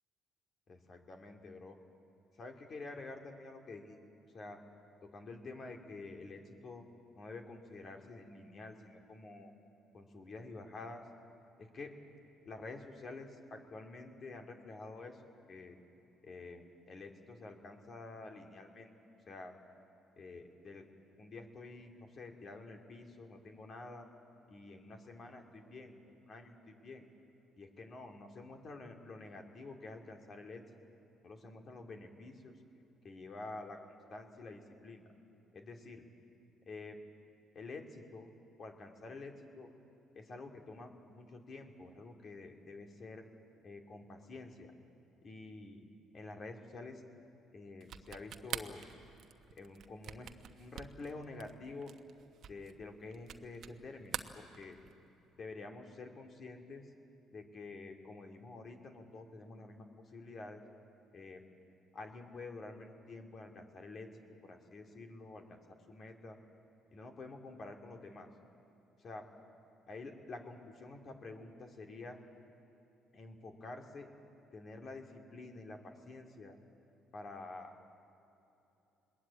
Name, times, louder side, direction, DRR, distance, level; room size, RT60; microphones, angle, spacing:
voice 1, 0.7-1.8 2.4-4.0 4.3-4.6 5.1-6.8 7.2-9.5 9.9-11.0 11.6-11.9 12.4-15.2 15.5-15.8 16.2-18.9 19.3-19.5 20.2-20.8 21.2-24.1 24.5-27.0 27.6-30.6 31.2-32.5 33.0-33.8 34.1-35.0 35.5-36.0 36.7-37.0 37.5-38.3 38.6-39.7 40.1-43.3 43.6-44.7 45.2-45.9 46.1-47.0 47.5-48.8 49.5-50.3 50.6-51.9 52.5-54.8 55.4-56.9 57.3-60.6 61.1-61.4 61.9-66.4 66.9-68.3 69.0-69.2 69.9-72.2 73.1-74.1 74.5-76.5 77.1-77.7, left 3 dB, 50° left, 3 dB, 2.7 m, -49 dB
sound 1, 47.8-53.8 54.1-55.1, right 9 dB, 60° right, 1.0 m, -45 dB
21.5 x 20.0 x 8.7 m, 2.9 s
hypercardioid pair, 60°, 0 cm